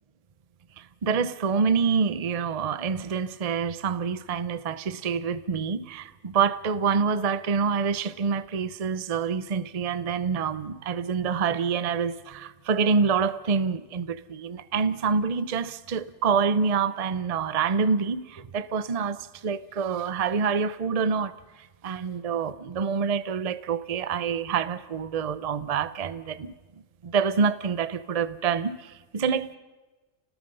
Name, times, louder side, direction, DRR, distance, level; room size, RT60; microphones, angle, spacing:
voice 1, 0.8-21.3 21.8-26.5 27.0-29.6, right 5 dB, 35° right, 0.6 m, -26 dB
30.0 x 19.0 x 5.5 m
omnidirectional pair, 1.6 m